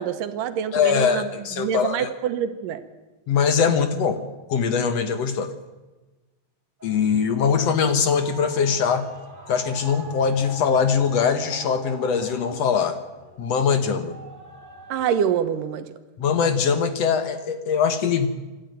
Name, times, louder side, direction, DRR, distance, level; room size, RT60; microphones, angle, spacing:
voice 1, 0.0-1.3 1.6-2.8 14.9-15.9, right 8 dB, 90° right, 10 dB, 2.8 m, -25 dB
voice 2, 0.7-2.1 3.3-4.2 4.5-5.5 6.8-9.1 9.5-13.0 13.4-14.2 16.2-18.3, left 6 dB, 60° left, 9 dB, 2.0 m, -22 dB
sound 1, 6.8-15.1, right 1 dB, 15° right, 3.6 m, -43 dB
26.5 x 12.0 x 9.2 m, 1.2 s
omnidirectional pair, 3.7 m